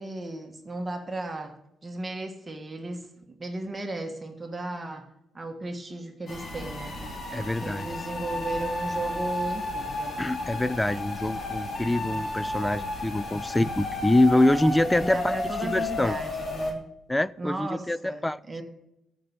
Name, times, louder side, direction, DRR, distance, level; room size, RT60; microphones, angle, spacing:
voice 1, 0.0-1.5 1.8-5.0 5.3-7.0 7.4-10.2 15.0-16.8 17.4-18.6, right 2 dB, 25° right, 1.5 m, -35 dB
sound 1, 6.3-16.7, left 2 dB, 50° left, 2.7 m, -32 dB
voice 2, 7.3-7.9 10.2-15.4 15.6-16.2 17.1-18.4, left 1 dB, 10° left, 0.3 m, -25 dB
14.0 x 5.4 x 7.2 m
cardioid pair, 90°, 0 cm